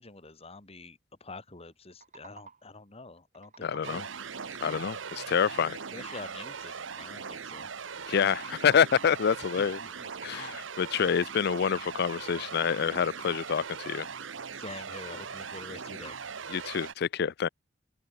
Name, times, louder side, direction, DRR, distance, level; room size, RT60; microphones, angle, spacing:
voice 1, 0.0-4.1 5.9-7.7 9.6-10.1 14.5-16.2, left 3 dB, 35° left, 2.4 m, -46 dB
sound 1, 1.7-2.8 3.2-4.3 8.3-9.2 9.6-10.7, right 5 dB, 40° right, 5.4 m, -53 dB
voice 2, 3.6-4.1 4.6-5.8 8.1-9.8 10.2-14.1 16.5-17.5, left 7 dB, 55° left, 0.4 m, -27 dB
sound 2, 3.8-16.9, right 6 dB, 80° right, 1.1 m, -40 dB
head